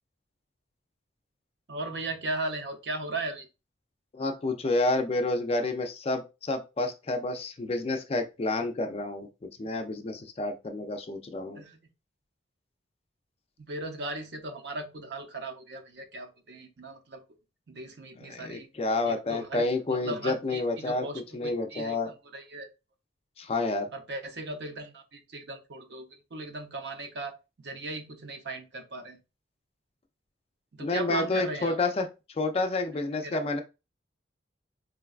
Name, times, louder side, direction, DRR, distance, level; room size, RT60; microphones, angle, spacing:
voice 1, 1.7-3.5 11.6-11.8 13.6-17.2 17.7-18.7 19.1-22.7 23.9-26.1 26.3-29.2 30.7-31.8 33.1-33.4, right 2 dB, 60° right, 6 dB, 0.6 m, -37 dB
voice 2, 4.1-9.3 9.6-11.6 18.2-21.1 21.3-22.1 23.4-23.9 30.8-32.1 32.4-33.6, left 2 dB, 30° left, 6 dB, 0.3 m, -29 dB
3.8 x 2.2 x 2.3 m, 0.28 s
head